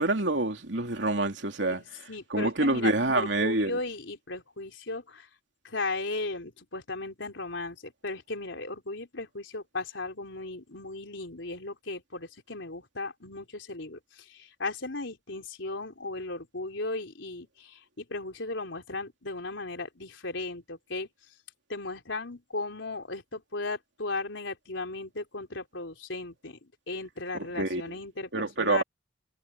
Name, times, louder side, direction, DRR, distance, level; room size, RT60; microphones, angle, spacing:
voice 1, 0.0-3.8 27.3-27.8 28.3-28.8, right 2 dB, 70° right, 3.1 m, -27 dB
voice 2, 2.1-5.3 5.6-21.1 21.7-28.8, left 2 dB, 85° left, 3.7 m, -36 dB
head